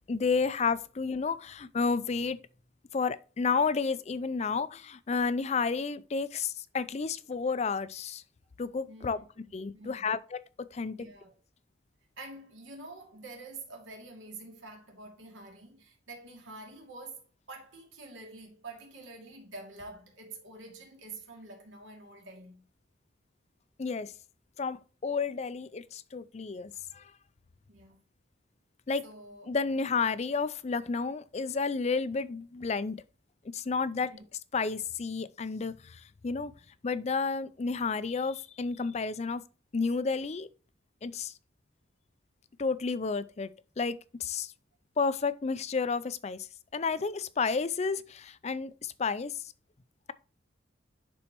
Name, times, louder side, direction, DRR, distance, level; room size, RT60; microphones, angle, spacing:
voice 1, 0.1-2.4 2.9-8.2 8.6-9.2 9.5-11.1 23.8-24.1 24.6-27.1 28.9-29.0 29.5-33.0 33.5-34.1 34.5-36.5 36.8-39.4 39.7-40.5 41.0-41.3 42.6-43.5 43.8-44.5 45.0-49.4, left 4 dB, 35° left, 0.4 m, -31 dB
voice 2, 8.9-10.1 10.9-11.3 12.2-22.7 27.7-28.0 29.0-29.8 34.0-34.2, right 2 dB, 85° right, 2.5 m, -47 dB
10.5 x 4.2 x 3.0 m
head